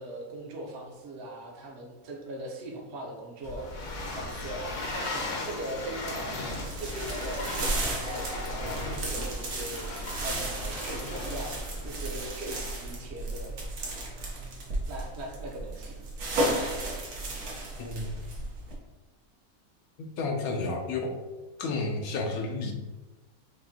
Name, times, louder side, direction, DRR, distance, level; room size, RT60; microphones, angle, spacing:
voice 1, 0.0-6.5 6.8-9.8 10.2-11.6 11.8-13.5 14.9-16.0, right 1 dB, 55° right, 0 dB, 0.9 m, -40 dB
sound 1, 3.4-12.0, left 2 dB, 65° left, 1.0 m, -37 dB
sound 2, 6.5-18.7, right 1 dB, 85° right, 1.3 m, -34 dB
voice 2, 17.8-18.1 20.0-21.2 21.6-22.7, left 3 dB, 85° left, 3 dB, 1.1 m, -31 dB
5.0 x 2.6 x 2.7 m, 1.1 s
omnidirectional pair, 1.5 m